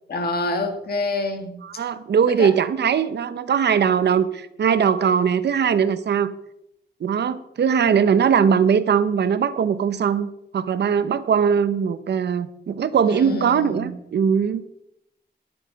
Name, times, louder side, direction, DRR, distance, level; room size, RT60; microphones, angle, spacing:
voice 1, 0.1-1.6 2.4-2.5 13.1-13.9, left 3 dB, 65° left, 4 dB, 2.0 m, -27 dB
voice 2, 1.6-6.3 7.0-14.6, right 7 dB, 85° right, 13 dB, 0.8 m, -20 dB
11.5 x 10.5 x 5.2 m, 0.80 s
wide cardioid pair, 170°, 17 cm